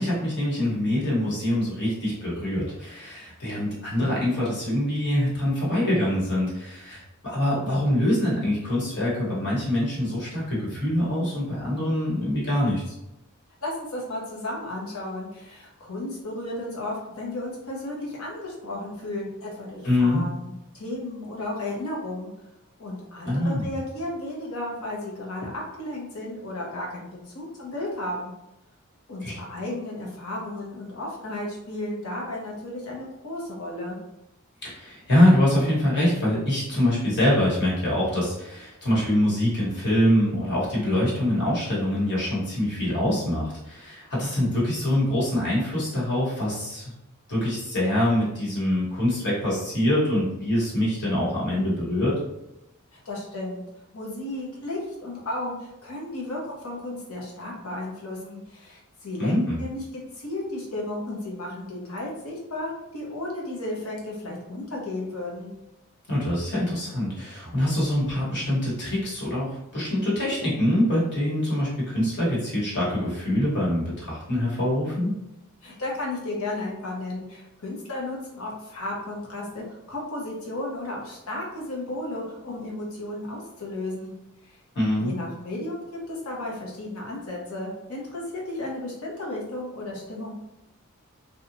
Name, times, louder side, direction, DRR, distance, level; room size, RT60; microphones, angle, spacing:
voice 1, 0.0-12.9 19.8-20.2 23.2-23.7 29.2-29.3 34.6-46.9 47.3-52.1 59.2-59.6 66.1-75.1 84.7-85.1, left 1 dB, 55° left, -6 dB, 1.3 m, -24 dB
voice 2, 13.6-22.3 22.8-28.3 29.1-34.0 53.0-53.6 53.9-65.5 75.6-84.1 84.4-84.6 85.0-90.3, left 1 dB, 80° left, -2 dB, 0.9 m, -34 dB
2.8 x 2.3 x 2.6 m, 0.90 s
head